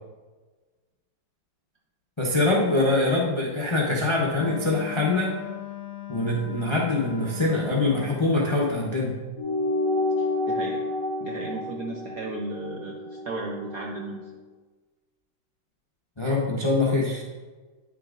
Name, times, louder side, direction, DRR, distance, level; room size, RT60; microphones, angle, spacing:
voice 1, 2.2-5.3 6.1-9.1 16.2-17.2, left 2 dB, 35° left, -4 dB, 0.4 m, -24 dB
Wind instrument woodwind instrument, 4.3-8.2, left 13 dB, 70° left, 1.6 m, -38 dB
sound 1, 9.4-14.2, left 2 dB, 55° left, 1.3 m, -29 dB
voice 2, 10.2-10.8 11.2-14.3, right 3 dB, 65° right, -1 dB, 0.8 m, -35 dB
9.8 x 6.7 x 2.5 m, 1.3 s
omnidirectional pair, 2.3 m